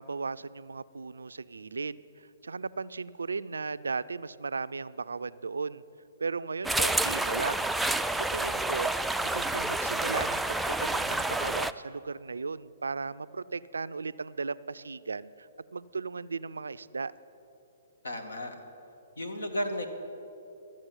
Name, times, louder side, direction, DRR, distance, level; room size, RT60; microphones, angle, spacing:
voice 1, 0.0-5.8 6.2-7.7 8.1-8.9 9.2-17.1, right 4 dB, 85° right, 16 dB, 0.3 m, -36 dB
sound 1, 6.6-11.7, right 2 dB, 5° right, 0.3 m, -29 dB
voice 2, 18.0-18.6 19.2-19.9, equal, 85° left, 5 dB, 1.5 m, -33 dB
13.0 x 7.5 x 9.0 m, 2.9 s
hypercardioid pair, 130°, 0 cm